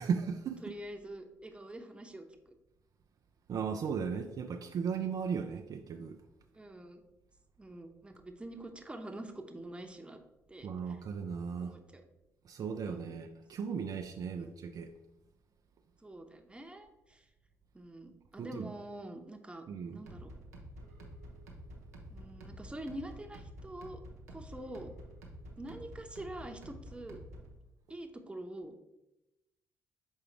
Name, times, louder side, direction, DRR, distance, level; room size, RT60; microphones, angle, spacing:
voice 1, 0.0-0.6 3.5-6.2 10.6-11.8 12.4-14.9 18.4-18.7 19.7-20.0, right 6 dB, 50° right, 0.4 m, -36 dB
voice 2, 0.6-2.5 6.5-7.0 7.6-10.2 10.5-11.0 11.6-12.0 12.8-13.2 14.4-14.6 16.0-17.3 17.7-19.6 19.9-20.3 22.1-24.0 24.3-24.9 25.6-27.2 27.9-28.8, right 1 dB, 15° right, 0.9 m, -46 dB
sound 1, 20.1-27.6, right 1 dB, 90° right, 0.7 m, -49 dB
6.2 x 4.7 x 3.3 m
hypercardioid pair, 45°, 8 cm